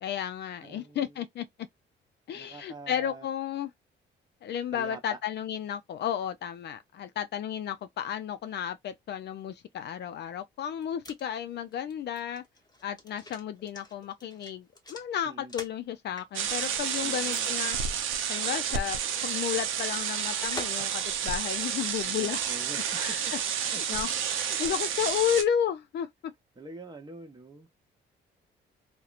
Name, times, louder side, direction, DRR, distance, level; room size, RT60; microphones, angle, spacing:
voice 1, 0.0-1.7 2.3-3.7 4.4-12.4 12.8-17.8 18.3-22.4 22.9-24.1 24.4-26.3, left 9 dB, 60° left, 0.4 m, -33 dB
voice 2, 0.6-1.2 2.3-3.3 4.7-5.2 15.2-15.5 17.0-17.5 20.8-21.0 22.0-23.2 23.7-24.0 26.6-27.7, right 2 dB, 20° right, 0.8 m, -45 dB
sound 1, 10.6-15.9 16.2-16.9 17.3-17.5 17.8-17.9 20.4-20.9 21.3-21.4, left 2 dB, 20° left, 1.0 m, -45 dB
sound 2, 16.3-25.4, right 8 dB, 90° right, 0.5 m, -30 dB
2.8 x 2.1 x 2.4 m
cardioid pair, 90°, 20 cm